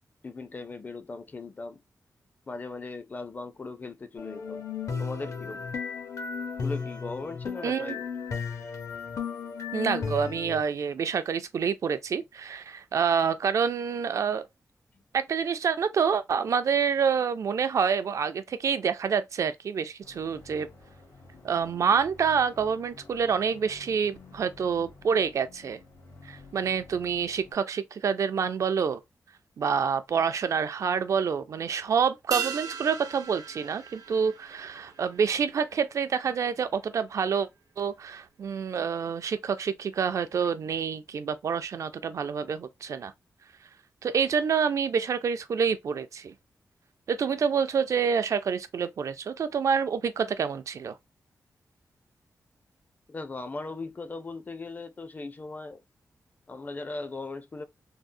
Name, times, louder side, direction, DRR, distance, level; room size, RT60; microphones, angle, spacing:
voice 1, 0.2-1.8 2.5-4.6 5.0-5.7 6.6-8.1 14.9-15.0 53.1-55.8 56.5-57.6, left 3 dB, 30° left, 0.4 m, -38 dB
sound 1, 4.2-10.6, left 6 dB, 65° left, 0.7 m, -34 dB
voice 2, 7.6-8.0 9.7-14.4 15.1-20.7 21.4-25.8 26.2-29.0 29.6-37.5 37.8-43.1 44.0-46.3 47.1-50.9, right 6 dB, 60° right, 0.4 m, -27 dB
sound 2, 20.0-27.5, left 3 dB, 80° left, 1.6 m, -51 dB
sound 3, 32.3-37.0 37.3-37.4, right 7 dB, 85° right, 0.8 m, -38 dB
3.6 x 2.0 x 2.5 m
wide cardioid pair, 155°, 6 cm